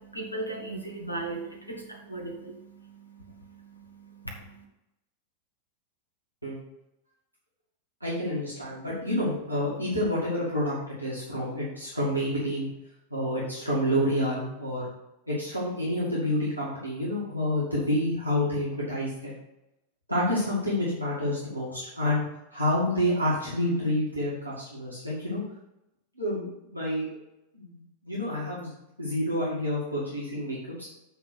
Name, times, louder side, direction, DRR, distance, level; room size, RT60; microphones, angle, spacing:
voice 1, 0.0-4.6, right 2 dB, 85° left, 1 dB, 1.4 m, -38 dB
voice 2, 8.0-12.7 13.1-14.8 15.3-19.4 20.1-22.2 22.5-25.4 26.2-27.1 27.5-28.7 29.0-30.9, left 1 dB, 90° right, -8 dB, 2.1 m, -28 dB
8.0 x 3.7 x 6.3 m, 0.88 s
figure-of-eight pair, 90°, 0 cm